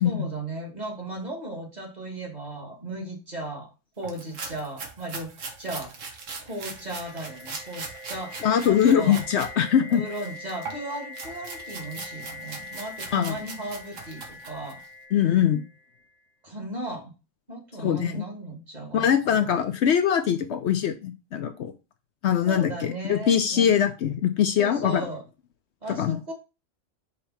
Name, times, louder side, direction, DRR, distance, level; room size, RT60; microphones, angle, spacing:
voice 1, 0.0-3.7 4.0-6.0 6.4-8.4 8.7-9.2 9.9-14.8 16.4-17.1 17.5-19.6 22.5-23.7 24.6-25.2 25.8-26.3, right 1 dB, 35° right, 0 dB, 1.8 m, -36 dB
sound 1, 4.0-9.5 9.9-14.9, right 4 dB, 80° right, 1.5 m, -40 dB
sound 2, 6.2-16.1, left 3 dB, 50° right, 2.7 m, -43 dB
voice 2, 8.4-10.0 13.1-13.3 15.1-15.6 17.8-18.2 18.9-21.7 22.2-25.0 26.0-26.2, left 9 dB, 65° left, 8 dB, 0.8 m, -22 dB
5.3 x 3.3 x 5.6 m, 0.29 s
omnidirectional pair, 1.3 m